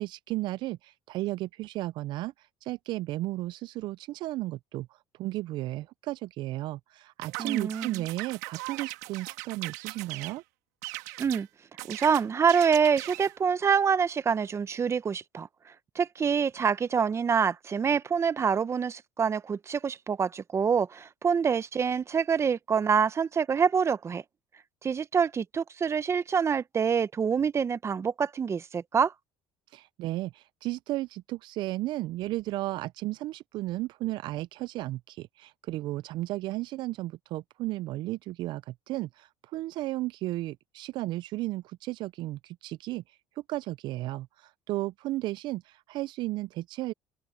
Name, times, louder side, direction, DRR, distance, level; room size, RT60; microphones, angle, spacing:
voice 1, 0.0-10.4 29.7-46.9, right 17 dB, 60° right, 0.4 m, -34 dB
sound 1, 7.2-10.4 10.8-11.4 11.8-13.4, right 22 dB, 85° right, 2.5 m, -39 dB
voice 2, 7.4-8.0 11.2-11.5 11.9-15.5 15.9-24.2 24.8-29.1, right 6 dB, 30° right, 1.1 m, -26 dB
open air
supercardioid pair, 80°, 9 cm